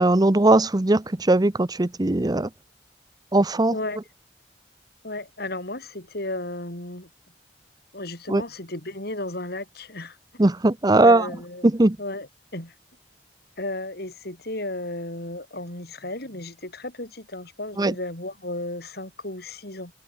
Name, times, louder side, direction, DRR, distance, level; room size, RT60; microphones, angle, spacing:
voice 1, 0.0-2.5 3.3-3.7 8.3-8.4 10.4-11.3 11.6-12.0 17.8-17.9, right 2 dB, 25° right, 0.7 m, -19 dB
voice 2, 5.0-7.1 7.9-10.2 11.0-11.7 12.0-12.7 13.6-19.9, left 2 dB, 60° left, 7.3 m, -34 dB
head